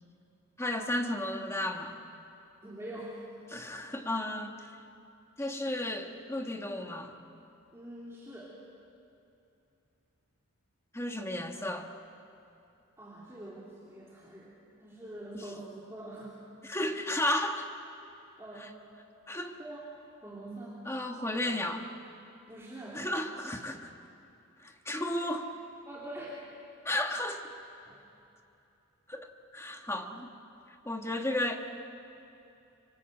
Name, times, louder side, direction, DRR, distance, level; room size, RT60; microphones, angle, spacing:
voice 1, 0.6-2.0 3.5-4.8 5.4-7.1 10.9-11.9 15.3-15.4 16.6-17.7 18.6-18.7 19.3-19.6 20.9-21.9 22.9-23.9 24.6-25.6 26.8-27.5 29.1-29.3 29.5-30.3 30.8-31.6, left 1 dB, 10° left, 4 dB, 1.5 m, -33 dB
voice 2, 2.6-3.2 7.7-8.5 13.0-16.3 18.4-18.7 19.6-19.8 20.2-20.8 22.5-23.0 25.9-26.4 27.8-28.0 30.0-30.1, right 1 dB, 10° right, -6 dB, 3.1 m, -44 dB
25.5 x 25.5 x 7.8 m, 2.8 s
head